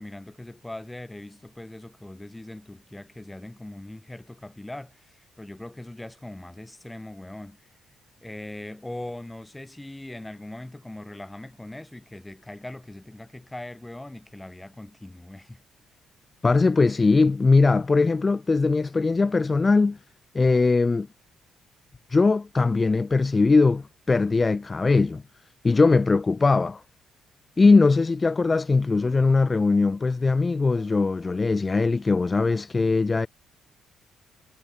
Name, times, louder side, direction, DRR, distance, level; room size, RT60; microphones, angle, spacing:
voice 1, 0.0-7.7 8.2-15.6, left 1 dB, 10° left, 7.8 m, -40 dB
voice 2, 16.4-20.0 20.3-21.1 22.1-25.2 25.6-26.8 27.6-33.3, left 3 dB, 30° left, 1.0 m, -20 dB
supercardioid pair, 60°, 0 cm